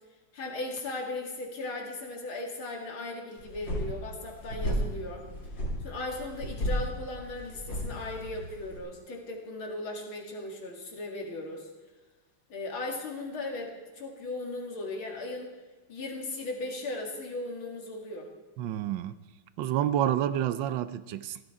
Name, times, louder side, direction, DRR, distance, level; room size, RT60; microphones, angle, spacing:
voice 1, 0.3-5.3 5.8-11.7 12.5-15.5 15.9-18.3, left 2 dB, 90° left, 0 dB, 3.1 m, -37 dB
sound 1, 3.4-8.8, equal, 60° left, 4.2 m, -34 dB
voice 2, 18.6-19.2 19.6-21.4, right 11 dB, 75° right, 13 dB, 1.3 m, -29 dB
17.5 x 13.5 x 4.8 m, 1.2 s
omnidirectional pair, 2.2 m